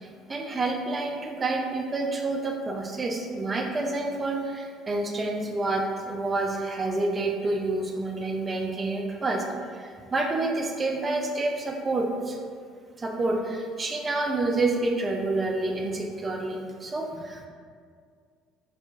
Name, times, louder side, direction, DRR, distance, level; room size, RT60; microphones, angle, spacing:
voice 1, 0.0-9.4 9.7-12.4 13.0-17.5, right 2 dB, 30° right, 1 dB, 0.4 m, -28 dB
2.8 x 2.2 x 2.4 m, 2.1 s
hypercardioid pair, 60°, 0 cm